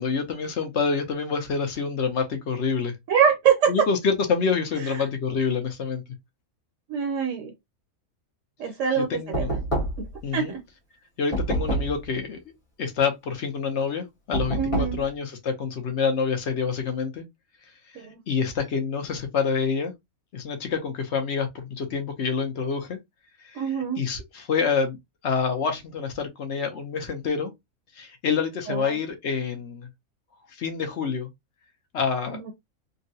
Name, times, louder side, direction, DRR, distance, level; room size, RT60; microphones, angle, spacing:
voice 1, 0.0-3.0 3.7-6.0 9.0-9.5 10.2-10.5 11.2-12.4 12.8-17.2 17.9-19.9 20.3-23.0 23.4-25.0 25.2-27.5 27.9-29.9 30.5-31.3 31.9-32.4, left 5 dB, 55° left, 1.0 m, -27 dB
voice 2, 3.1-3.7 6.9-7.5 8.6-9.1 9.4-9.5 10.3-10.6 14.6-15.0 17.9-18.2 23.5-24.0 28.7-29.0 32.3-32.5, right 7 dB, 65° right, 1.0 m, -24 dB
Knock, 9.3-10.2 11.3-12.1 14.3-15.1, right 1 dB, 25° left, 1.3 m, -27 dB
3.7 x 2.1 x 2.7 m
omnidirectional pair, 1.5 m